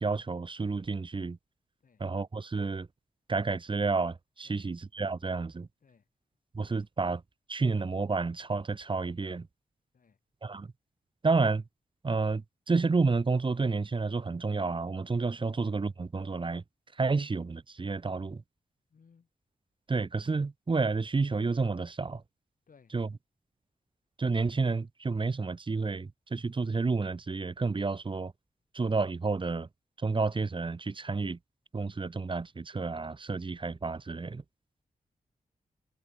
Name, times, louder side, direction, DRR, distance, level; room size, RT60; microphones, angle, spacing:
voice 1, 0.0-1.4 2.0-2.9 3.3-5.7 6.5-7.2 7.5-9.5 10.4-10.7 11.2-11.6 12.0-16.6 17.0-18.4 19.9-22.2 22.9-23.1 24.2-28.3 28.7-29.7 30.0-31.4 31.7-34.4, right 4 dB, 35° right, 1.0 m, -30 dB
voice 2, 18.9-19.3 22.7-22.9, left 6 dB, 65° left, 6.9 m, -62 dB
cardioid pair, 65°, 15 cm